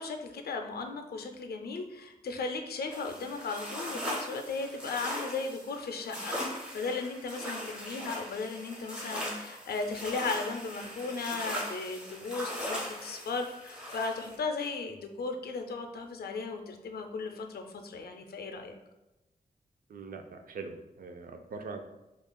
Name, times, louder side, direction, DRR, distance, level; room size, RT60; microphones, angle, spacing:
voice 1, 0.0-18.8, left 4 dB, 90° left, 5 dB, 0.5 m, -36 dB
seashore egypt - finepebbles, 2.9-14.3, equal, 5° right, 0.9 m, -39 dB
voice 2, 19.9-21.8, right 4 dB, 65° right, 5 dB, 0.4 m, -42 dB
5.4 x 2.4 x 2.2 m, 0.97 s
wide cardioid pair, 140°, 16 cm